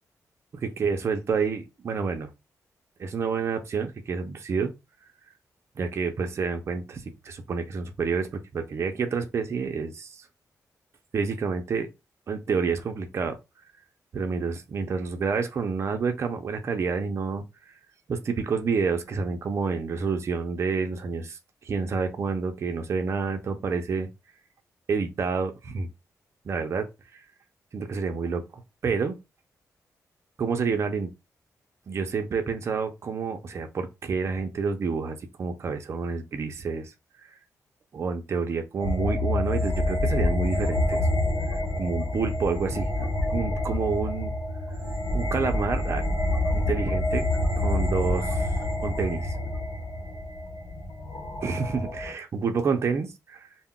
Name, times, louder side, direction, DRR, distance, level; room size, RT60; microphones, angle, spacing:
voice 1, 0.5-2.3 3.0-4.7 5.8-10.3 11.1-11.9 12.3-13.4 14.1-17.4 18.1-21.4 21.6-24.1 24.9-25.9 26.4-26.9 27.1-27.2 27.7-29.2 30.4-31.1 31.9-36.9 37.9-41.0 41.5-44.3 45.1-46.0 46.5-47.3 47.6-48.5 48.8-49.3 51.4-53.5, right 5 dB, 45° right, 0.4 m, -29 dB
sound 1, 38.8-52.1, left 1 dB, 80° left, 0.9 m, -27 dB
2.2 x 2.0 x 3.6 m
wide cardioid pair, 125°, 6 cm